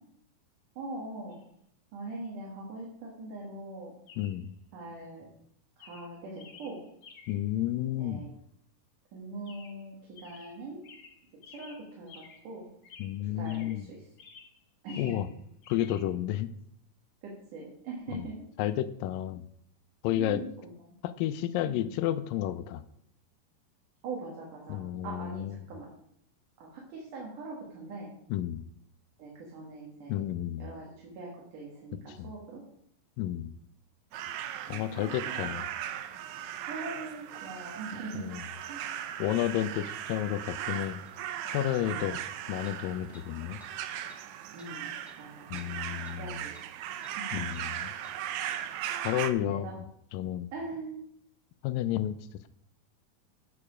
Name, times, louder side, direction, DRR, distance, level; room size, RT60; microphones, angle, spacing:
voice 1, 0.8-1.4 1.9-3.9 4.7-5.3 5.8-6.8 8.0-8.3 9.1-10.0 10.2-10.8 11.5-12.7 13.4-14.0 14.8-15.2 17.5-18.4 20.1-20.7 21.7-21.8 24.0-25.9 26.6-28.1 29.2-30.2 30.6-32.6 34.7-35.5 36.7-38.3 38.7-38.8 41.8-42.0 44.5-45.8 46.1-46.5 47.2-47.4 49.4-49.7 50.5-50.9, right 3 dB, 65° right, -3 dB, 3.2 m, -42 dB
Chirp tweet, 1.3-1.4 4.1-4.5 5.2-5.4 5.8-7.5 9.5-9.9 10.2-12.5 12.8-13.9 14.2-15.3 15.6-16.0, left 5 dB, 55° left, 1.6 m, -52 dB
voice 2, 4.2-4.5 7.3-8.3 13.0-13.9 15.0-15.3 15.7-16.5 18.1-18.3 18.6-19.4 20.0-20.5 21.0-22.8 24.7-25.6 28.3-28.6 30.1-30.7 32.2-32.3 33.2-33.5 34.7-35.6 38.2-38.4 39.2-41.0 41.5-42.2 42.5-43.6 45.5-46.4 47.3-47.9 49.0-49.8 50.1-50.5 51.6-52.2, left 12 dB, 85° left, 13 dB, 2.2 m, -31 dB
sound 1, 34.1-49.3, right 10 dB, 85° right, 1.7 m, -38 dB
sound 2, 41.1-41.2 42.6-42.8 43.1-43.3 43.6-43.7 44.1-44.2 44.6-44.7 45.0-45.2 45.6-45.7 46.0-46.2 46.5-46.7 47.0-47.2 47.5-47.7 48.0-48.2 48.5-48.6, left 1 dB, ahead, 1.1 m, -56 dB
9.5 x 6.8 x 5.0 m, 0.70 s
omnidirectional pair, 4.0 m